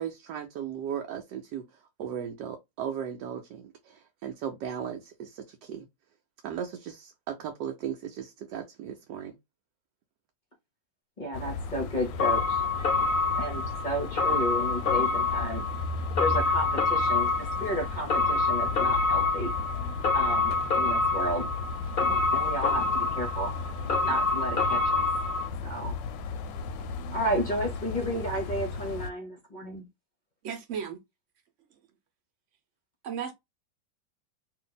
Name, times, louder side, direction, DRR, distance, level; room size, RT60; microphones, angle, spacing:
voice 1, 0.0-1.6 2.0-5.9 6.4-9.4, right 8 dB, 75° right, 1.1 m, -36 dB
voice 2, 11.2-12.6 13.4-15.7 16.2-19.5 20.1-21.5 22.0-23.6 24.0-25.0 25.6-26.0 27.1-29.9, equal, 35° left, 0.7 m, -32 dB
sound 1, 11.3-29.1, left 4 dB, 90° left, 1.2 m, -36 dB
sound 2, 12.2-25.5, left 3 dB, 70° left, 0.4 m, -27 dB
voice 3, 30.4-31.0 33.0-33.3, right 7 dB, 55° right, 1.0 m, -34 dB
2.8 x 2.6 x 3.9 m
omnidirectional pair, 1.9 m